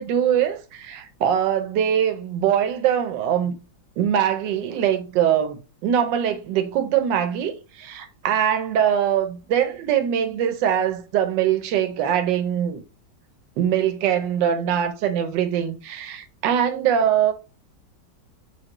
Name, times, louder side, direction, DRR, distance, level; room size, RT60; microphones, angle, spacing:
voice 1, 0.0-3.5 4.0-12.8 13.6-17.3, right 9 dB, 75° right, 1.3 m, -22 dB
5.8 x 2.7 x 2.9 m
omnidirectional pair, 2.0 m